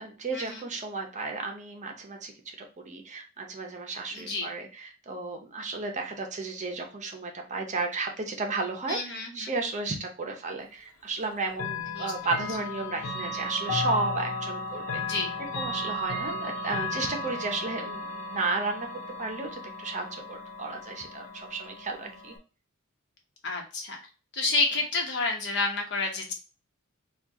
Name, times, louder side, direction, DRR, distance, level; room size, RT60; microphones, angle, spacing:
voice 1, 0.0-2.3 2.6-15.0 15.5-18.9 19.2-22.4, right 3 dB, 35° right, 3 dB, 0.7 m, -33 dB
voice 2, 4.1-4.5 8.9-9.5 11.9-12.1 15.0-15.3 23.4-24.0 24.3-26.3, left 3 dB, 55° left, 1 dB, 1.1 m, -29 dB
Chime / Clock, 11.5-22.4, left 2 dB, 75° left, 0.8 m, -35 dB
4.3 x 2.4 x 3.5 m, 0.34 s
head